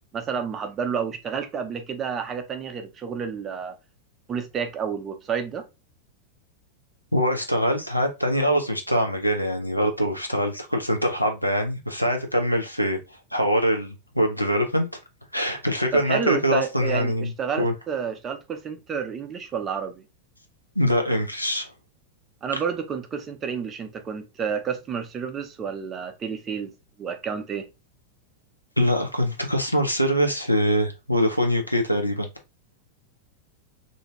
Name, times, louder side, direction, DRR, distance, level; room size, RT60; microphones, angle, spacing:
voice 1, 0.1-3.8 4.3-5.7 15.9-20.0 22.4-26.7 27.0-27.7, right 6 dB, 25° right, 0.5 m, -30 dB
voice 2, 7.1-13.0 13.3-14.9 15.3-17.3 17.6-17.7 20.8-21.7 28.8-32.3, equal, 90° left, 0.5 m, -23 dB
2.6 x 2.2 x 2.8 m
figure-of-eight pair, 90°, 0 cm